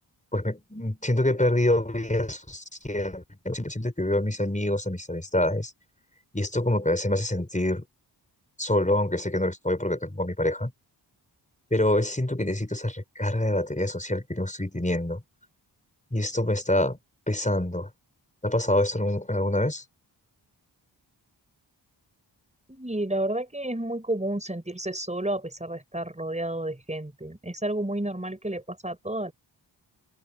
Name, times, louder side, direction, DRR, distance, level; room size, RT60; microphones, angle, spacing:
voice 1, 0.3-5.7 6.3-7.8 8.6-10.7 11.7-15.2 16.1-17.0 17.3-17.9 18.4-19.8, left 1 dB, 15° left, 5.5 m, -26 dB
voice 2, 22.7-29.3, right 1 dB, 15° right, 6.0 m, -31 dB
open air
cardioid pair, 55°, 45 cm